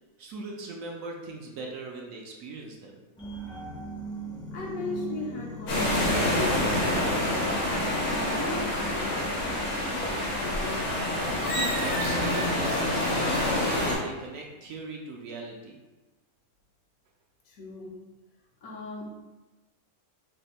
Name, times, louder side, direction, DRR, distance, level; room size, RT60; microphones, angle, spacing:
voice 1, 0.2-3.0 11.2-15.8, right 3 dB, 70° right, 0 dB, 0.9 m, -40 dB
sound 1, 3.2-14.2 14.6-14.7, right 2 dB, 5° left, 0.4 m, -40 dB
voice 2, 4.5-7.7 8.0-10.9 17.5-18.0 18.6-19.2, left 3 dB, 70° left, -2 dB, 1.1 m, -39 dB
sound 2, 5.7-14.0, left 1 dB, 90° left, 1.4 m, -27 dB
3.4 x 2.1 x 4.1 m, 1.1 s
omnidirectional pair, 1.5 m